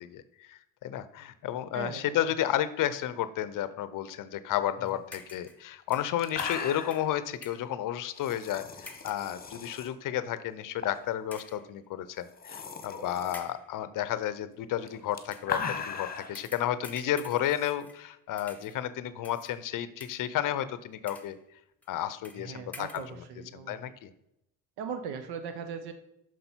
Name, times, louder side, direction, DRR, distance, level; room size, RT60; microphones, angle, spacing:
voice 1, 0.5-21.4 21.9-23.0 23.5-24.1, left 11 dB, 55° left, 14 dB, 0.6 m, -32 dB
voice 2, 1.7-2.2 4.8-4.9 22.4-23.8 24.8-25.9, right 6 dB, 85° right, 8 dB, 0.9 m, -39 dB
sound 1, 5.1-5.7 5.9-7.7 8.9-9.3 10.0-10.2 11.3-11.7 12.8-13.0 13.3-13.8 15.2-15.6 16.3-18.1 18.4-18.9 19.2-19.6 20.0-20.5 20.9-21.4 21.8-21.9 22.2-22.5 22.7-23.1, left 2 dB, 5° left, 0.8 m, -49 dB
sound 2, 5.4-5.5 5.9-6.0 6.2-7.1 8.2-9.9 10.8-11.1 11.4-11.5 12.2-13.4 14.8-16.4 17.5-17.7, left 6 dB, 25° left, 1.1 m, -37 dB
6.2 x 5.4 x 4.4 m, 0.81 s
cardioid pair, 105°, 38 cm